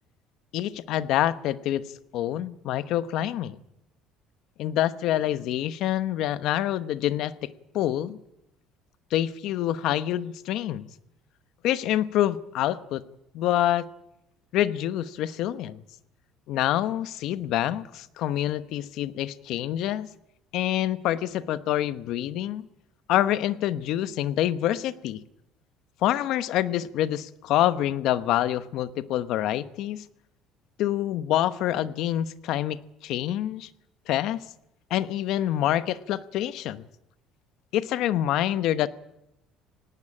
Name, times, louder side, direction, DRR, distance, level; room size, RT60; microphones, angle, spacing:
voice 1, 0.5-1.8 2.1-3.6 4.6-8.2 9.1-10.9 11.6-13.0 13.3-13.9 14.5-15.8 16.5-20.1 20.5-22.6 23.1-25.2 26.0-30.0 30.8-33.7 34.1-34.4 34.9-36.8 37.7-38.9, left 12 dB, 55° left, 14 dB, 1.0 m, -26 dB
18.5 x 18.0 x 8.9 m, 0.85 s
cardioid pair, 160°, 0 cm